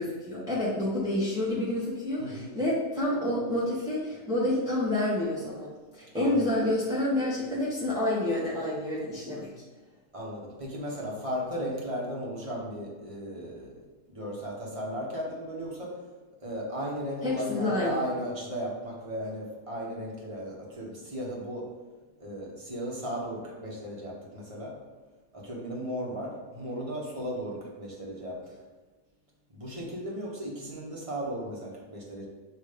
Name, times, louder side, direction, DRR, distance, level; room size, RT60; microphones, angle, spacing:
voice 1, 0.0-9.5 17.2-18.0, left 1 dB, 5° right, -9 dB, 1.0 m, -28 dB
voice 2, 2.2-2.5 6.1-6.5 10.1-13.7 14.1-16.0 16.4-21.7 22.2-24.8 25.3-28.4 29.5-32.3, equal, 20° right, -4 dB, 1.2 m, -36 dB
7.2 x 2.8 x 5.1 m, 1.3 s
omnidirectional pair, 1.7 m